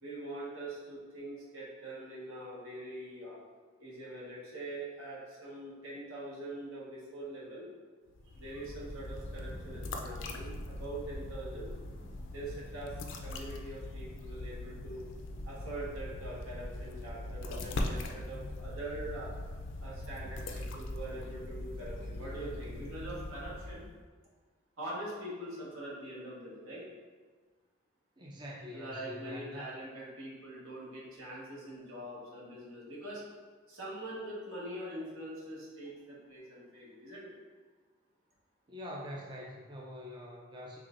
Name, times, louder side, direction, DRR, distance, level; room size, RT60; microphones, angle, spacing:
voice 1, 0.0-3.4 3.8-7.7 8.3-11.7 12.3-12.9 13.2-15.0 15.4-19.3 19.8-23.9 24.8-26.8 28.7-33.2 33.7-37.4, right 1 dB, 80° right, -6 dB, 1.4 m, -43 dB
sound 1, 8.1-24.0, left 1 dB, 60° left, 0.4 m, -41 dB
voice 2, 28.2-29.7 38.7-40.8, left 1 dB, 20° right, -3 dB, 0.4 m, -44 dB
5.5 x 3.4 x 2.5 m, 1.4 s
head